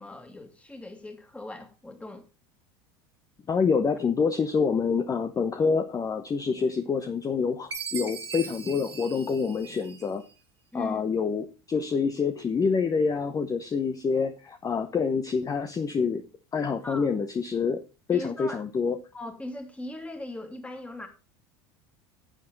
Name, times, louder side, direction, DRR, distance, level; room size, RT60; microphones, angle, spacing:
voice 1, 0.0-2.3 10.7-11.0 16.8-17.1 18.1-18.6 19.1-21.1, left 2 dB, 10° left, 2.4 m, -39 dB
voice 2, 3.5-10.2 10.7-16.2 16.5-17.8 18.1-18.9, left 5 dB, 25° left, 0.9 m, -27 dB
Chime, 7.7-10.3, right 6 dB, 90° right, 2.0 m, -39 dB
10.5 x 7.7 x 4.0 m
hypercardioid pair, 85°, 13 cm